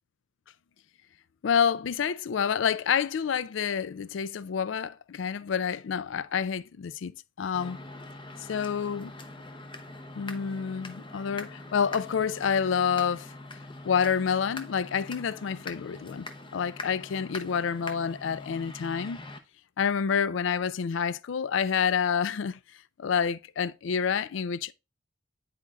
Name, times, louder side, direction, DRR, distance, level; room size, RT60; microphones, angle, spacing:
voice 1, 1.4-7.1 7.4-7.8 8.5-9.1 10.2-13.3 13.8-19.2 19.8-22.6 23.0-24.7, left 7 dB, 70° left, 0.4 m, -28 dB
sound 1, 7.5-19.4, left 2 dB, 25° left, 0.7 m, -43 dB
10.5 x 4.3 x 2.4 m
head